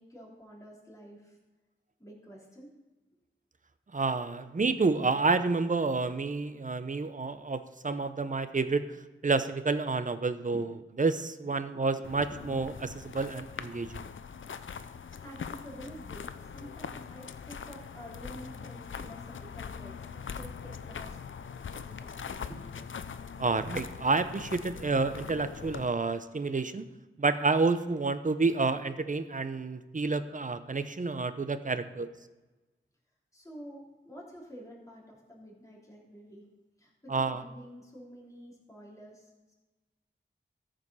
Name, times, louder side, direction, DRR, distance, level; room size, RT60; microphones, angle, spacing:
voice 1, 0.0-1.4 2.0-2.7 10.5-10.6 12.3-12.4 15.2-21.2 21.7-22.6 33.3-36.4 36.8-39.5, equal, 15° left, -4 dB, 3.4 m, -49 dB
voice 2, 3.9-8.9 9.2-10.7 11.0-14.0 23.4-26.9 27.2-32.1 37.1-37.4, right 3 dB, 40° right, 11 dB, 0.7 m, -29 dB
sound 1, 12.0-25.9, left 6 dB, 70° left, 0.5 m, -42 dB
14.0 x 5.1 x 5.5 m, 1.2 s
wide cardioid pair, 70°, 21 cm